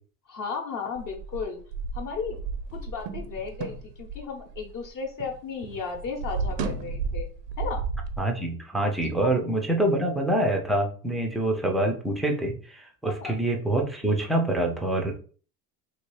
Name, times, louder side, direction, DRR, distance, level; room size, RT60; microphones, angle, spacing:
voice 1, 0.3-1.6 1.9-2.4 2.7-7.3 7.6-7.8 9.2-9.3 13.0-13.3, left 5 dB, 40° left, 2 dB, 0.9 m, -34 dB
sound 1, 1.0-5.4 5.6-8.2, right 4 dB, 80° right, 0.7 m, -33 dB
voice 2, 8.2-15.2, right 1 dB, ahead, 2 dB, 0.3 m, -26 dB
2.9 x 2.7 x 3.0 m, 0.41 s
hypercardioid pair, 90°, 47 cm